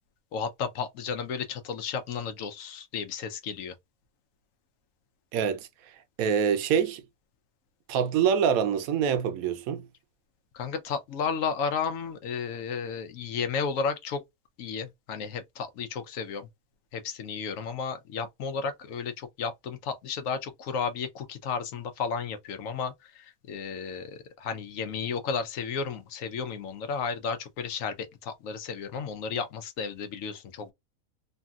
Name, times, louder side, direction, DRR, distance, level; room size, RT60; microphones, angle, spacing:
voice 1, 0.3-3.7 10.5-14.2 14.6-16.5 16.9-30.7, left 6 dB, 75° left, 1.0 m, -33 dB
voice 2, 5.3-5.7 6.2-7.0 7.9-9.8, right 7 dB, 80° right, 1.0 m, -25 dB
3.1 x 2.6 x 2.3 m
omnidirectional pair, 1.4 m